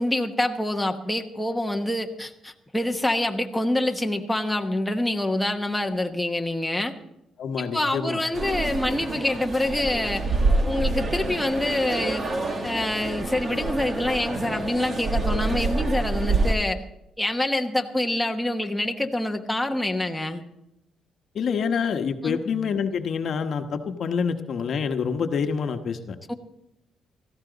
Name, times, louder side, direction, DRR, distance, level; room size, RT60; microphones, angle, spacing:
voice 1, 0.0-6.9 7.6-10.3 10.7-12.2 12.6-16.8 17.2-20.4 22.2-22.4 26.3-26.4, left 1 dB, 5° left, 3 dB, 1.2 m, -26 dB
voice 2, 7.4-8.2 21.3-26.2, left 6 dB, 60° left, 7 dB, 1.1 m, -27 dB
sound 1, 8.3-16.5, right 2 dB, 40° right, 1.9 m, -27 dB
17.5 x 14.5 x 4.0 m, 0.85 s
cardioid pair, 90°, 0 cm